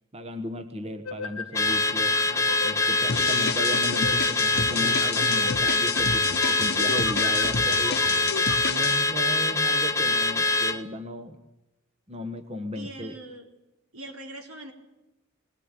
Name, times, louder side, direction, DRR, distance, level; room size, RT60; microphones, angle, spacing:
voice 1, 0.1-2.2 2.6-8.1 8.7-11.4 12.1-13.1, equal, 30° right, 7 dB, 1.3 m, -35 dB
sound 1, 1.0-8.9, left 5 dB, 75° left, 1.0 m, -37 dB
Car / Alarm, 1.5-10.8, left 2 dB, 15° left, 0.9 m, -24 dB
sound 2, 3.1-9.0, left 6 dB, 50° left, 0.9 m, -32 dB
voice 2, 12.7-13.5 13.9-14.7, right 1 dB, 80° right, 4 dB, 4.2 m, -41 dB
21.0 x 20.0 x 9.0 m, 0.96 s
head